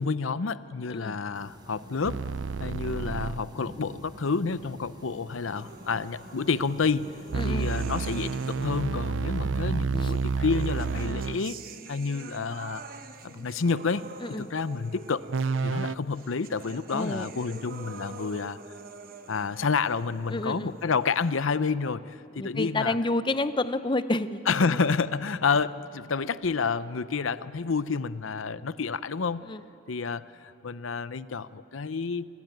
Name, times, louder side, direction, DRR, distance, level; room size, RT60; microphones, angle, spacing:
voice 1, 0.0-2.3 2.6-7.2 7.4-11.6 11.9-12.8 13.2-14.0 14.4-15.3 15.6-18.6 19.3-23.0 24.5-29.5 29.9-32.3, left 4 dB, 90° left, 15 dB, 0.7 m, -29 dB
sound 1, 1.3-11.1, equal, 20° right, 4.0 m, -45 dB
sound 2, 2.0-3.5 7.3-11.5 15.3-15.9, right 5 dB, 80° right, 0.5 m, -29 dB
sound 3, 5.5-9.0 10.0-21.6, right 3 dB, 45° right, 1.2 m, -47 dB
voice 2, 7.3-7.7 10.0-10.1 14.2-14.5 16.9-17.3 20.3-20.7 22.4-24.8 29.5-29.6, left 2 dB, 25° left, 12 dB, 0.6 m, -29 dB
28.0 x 21.0 x 9.3 m, 2.7 s
head